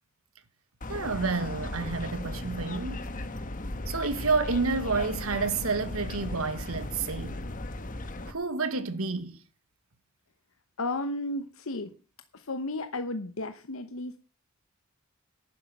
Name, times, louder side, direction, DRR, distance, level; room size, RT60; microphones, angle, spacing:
sound 1, 0.8-8.3, left 2 dB, 40° left, 1.3 m, -36 dB
voice 1, 0.9-3.1 3.9-7.4 8.2-9.4, right 4 dB, 80° right, 1.5 m, -29 dB
voice 2, 10.8-11.9 12.3-14.2, left 2 dB, 70° left, 1.0 m, -33 dB
11.0 x 10.5 x 6.0 m
head